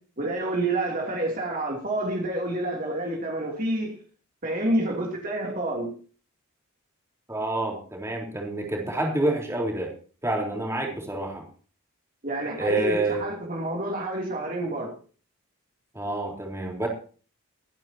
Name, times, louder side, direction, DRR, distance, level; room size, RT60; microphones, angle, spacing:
voice 1, 0.2-3.9 4.4-5.9 12.2-14.9, right 1 dB, 40° right, 3.0 m, -28 dB
voice 2, 7.3-9.9 10.2-11.4 12.6-13.2 15.9-16.9, right 2 dB, 10° right, 4.0 m, -28 dB
25.0 x 10.5 x 2.9 m
head